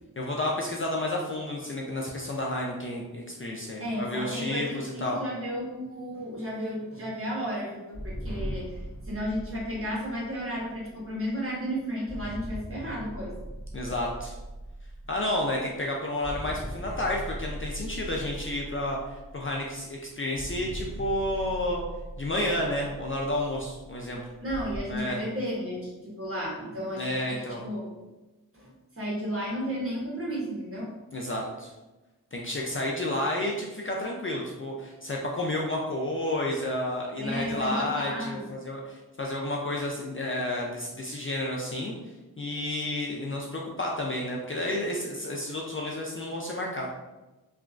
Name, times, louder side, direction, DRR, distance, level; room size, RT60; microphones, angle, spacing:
voice 1, 0.2-5.2 13.7-14.4 15.1-21.8 22.2-24.2 24.9-25.2 27.0-27.6 31.1-31.7 32.3-41.9 42.4-46.9, left 1 dB, 35° left, -2 dB, 0.4 m, -31 dB
voice 2, 3.8-13.3 13.8-13.9 24.4-27.9 28.5-30.9 37.2-38.4, equal, 35° right, -5 dB, 1.2 m, -33 dB
sound 1, 7.9-11.5 12.1-15.9 16.2-19.8 20.4-24.8, equal, ahead, 1.2 m, -40 dB
2.9 x 2.4 x 2.4 m, 1.1 s
cardioid pair, 50°, 38 cm